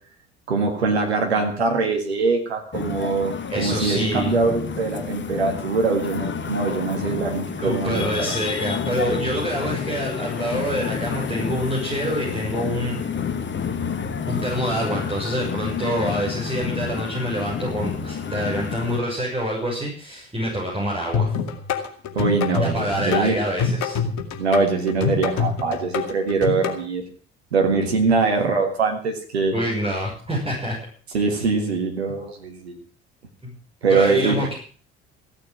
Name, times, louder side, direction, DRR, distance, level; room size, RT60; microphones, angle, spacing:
voice 1, 0.5-8.3 22.2-23.4 24.4-27.0 27.5-29.5 31.1-32.8 33.8-34.5, right 4 dB, 85° right, 3 dB, 1.9 m, -23 dB
sound 1, 2.7-19.0, left 6 dB, 35° left, 1.9 m, -29 dB
voice 2, 3.5-4.4 7.6-13.1 14.3-21.3 22.6-24.0 29.5-30.7 33.4-33.5 33.9-34.5, equal, 20° right, -4 dB, 6.8 m, -26 dB
sound 2, 21.1-26.8, left 6 dB, 60° left, 2.4 m, -25 dB
15.5 x 8.9 x 7.4 m, 0.43 s
hypercardioid pair, 55°, 32 cm